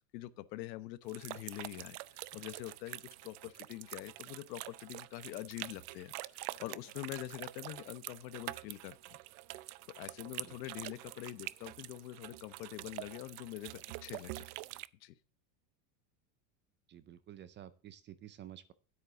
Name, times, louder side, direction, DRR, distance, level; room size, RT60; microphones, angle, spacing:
voice 1, 0.1-9.2 10.0-14.5 15.0-15.2, left 16 dB, 85° left, 1.2 m, -45 dB
sound 1, 1.1-14.9, right 19 dB, 65° right, 0.6 m, -46 dB
voice 2, 16.9-18.7, right 11 dB, 25° right, 0.4 m, -51 dB
9.8 x 8.8 x 3.8 m
supercardioid pair, 145°, 50 cm